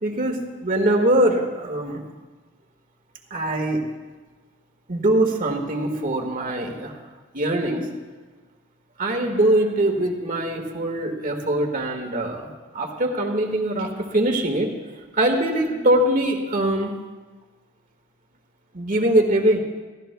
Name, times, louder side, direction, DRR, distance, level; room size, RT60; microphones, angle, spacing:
voice 1, 0.0-2.0 3.3-3.8 4.9-7.0 7.3-7.9 9.0-14.7 15.1-16.9 18.7-19.6, right 1 dB, 45° right, 3 dB, 1.7 m, -22 dB
28.0 x 13.0 x 2.3 m, 1.3 s
head